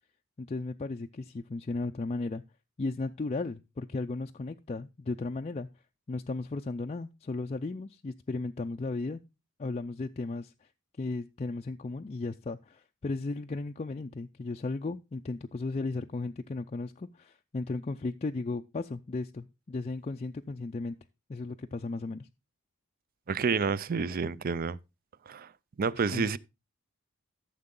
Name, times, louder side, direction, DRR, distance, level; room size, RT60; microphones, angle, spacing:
voice 1, 0.4-2.4 2.8-5.7 6.1-9.2 9.6-10.5 11.0-21.0 21.3-22.3 25.9-26.3, left 3 dB, 30° left, 0.4 m, -35 dB
voice 2, 23.3-24.8 25.3-25.5 25.8-26.4, right 5 dB, 45° right, 0.4 m, -29 dB
13.5 x 6.7 x 3.7 m
head